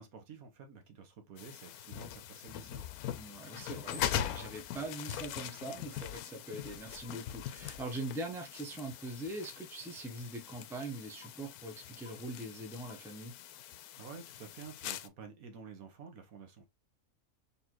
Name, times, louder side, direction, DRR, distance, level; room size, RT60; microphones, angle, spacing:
voice 1, 0.0-2.9 14.0-16.7, right 5 dB, 70° right, 1.4 m, -50 dB
sound 1, 1.4-15.1, left 10 dB, 80° left, 1.1 m, -42 dB
voice 2, 3.2-13.3, right 2 dB, ahead, 0.7 m, -42 dB
4.1 x 3.5 x 2.9 m
omnidirectional pair, 1.6 m